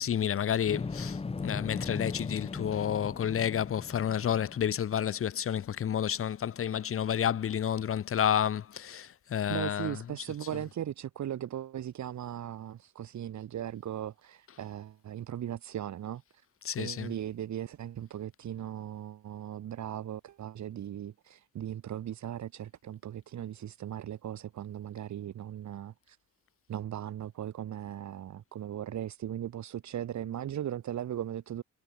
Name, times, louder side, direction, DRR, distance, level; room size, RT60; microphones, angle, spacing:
voice 1, 0.0-10.6 14.5-14.6 16.6-17.2, left 9 dB, 45° left, 1.0 m, -30 dB
sound 1, 0.7-4.8, left 4 dB, 20° left, 1.0 m, -38 dB
voice 2, 9.5-16.4 16.8-26.2 26.7-31.6, right 11 dB, 65° right, 4.9 m, -38 dB
cardioid pair, 90°, 30 cm